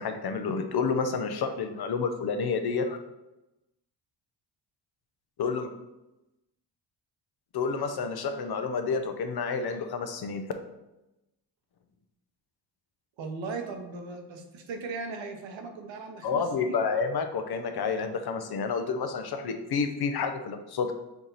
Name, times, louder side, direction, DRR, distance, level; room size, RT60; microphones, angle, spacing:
voice 1, 0.0-3.0 5.4-5.7 7.5-10.4 16.2-20.9, left 5 dB, 50° left, 6 dB, 0.7 m, -29 dB
voice 2, 13.2-16.8, right 4 dB, 70° right, 4 dB, 0.9 m, -38 dB
4.6 x 2.7 x 4.0 m, 0.95 s
supercardioid pair, 60°, 48 cm